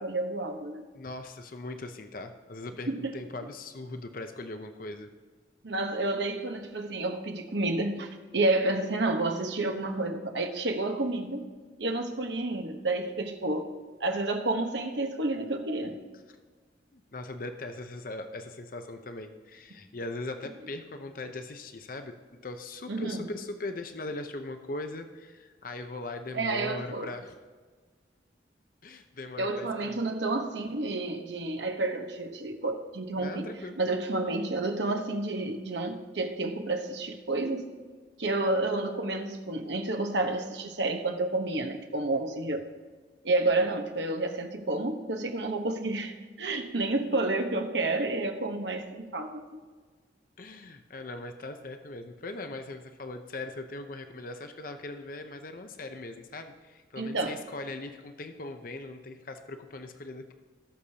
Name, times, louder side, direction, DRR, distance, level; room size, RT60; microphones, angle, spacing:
voice 1, 0.0-0.8 2.9-3.1 5.6-11.5 11.8-13.7 14.0-16.0 22.9-23.3 26.3-27.1 29.4-33.5 33.8-37.7 38.2-42.6 43.2-49.4 57.0-57.3, right 2 dB, 80° right, 4 dB, 1.2 m, -30 dB
voice 2, 0.9-5.1 16.1-16.4 16.9-27.3 28.8-30.0 33.2-33.8 50.4-60.3, left 2 dB, 50° left, 7 dB, 0.7 m, -40 dB
19.0 x 6.6 x 2.9 m, 1.5 s
head